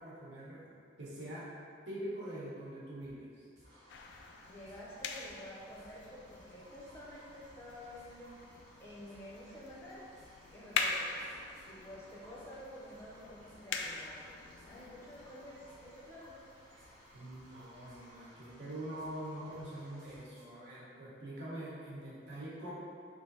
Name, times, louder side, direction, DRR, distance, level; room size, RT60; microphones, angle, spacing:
voice 1, 0.0-1.5 1.9-3.5 17.1-22.7, right 1 dB, 70° right, -7 dB, 1.1 m, -44 dB
sound 1, 3.0-3.1 3.6-3.7 4.1-4.8 5.2-5.3 5.8-5.9 6.3-12.7 12.9-13.8 14.0-14.3 14.6-14.9 15.1-16.0 16.2-17.1 17.3-20.5, right 1 dB, 15° right, 0.9 m, -66 dB
sound 2, 3.6-20.2, equal, 90° right, 1.3 m, -60 dB
sound 3, 3.9-18.1, left 5 dB, 85° left, 0.3 m, -44 dB
voice 2, 4.5-8.3 8.8-10.0 10.5-11.3 11.7-14.3 14.6-16.4, left 1 dB, 15° left, -7 dB, 0.6 m, -50 dB
3.3 x 2.7 x 4.0 m, 2.3 s
head